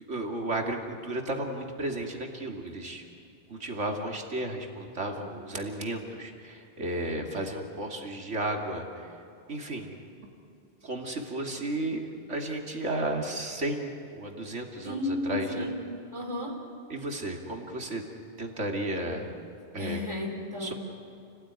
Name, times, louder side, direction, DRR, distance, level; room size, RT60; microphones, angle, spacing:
voice 1, 0.1-3.0 3.5-9.1 9.5-9.9 10.2-10.3 10.8-15.7 16.9-18.0 18.4-19.3 19.7-20.0 20.6-20.7, right 1 dB, 85° right, 2 dB, 2.9 m, -33 dB
voice 2, 14.8-15.8 16.1-16.6 19.8-20.7, left 2 dB, 25° right, 2 dB, 4.0 m, -33 dB
29.5 x 18.0 x 9.8 m, 2.6 s
omnidirectional pair, 1.2 m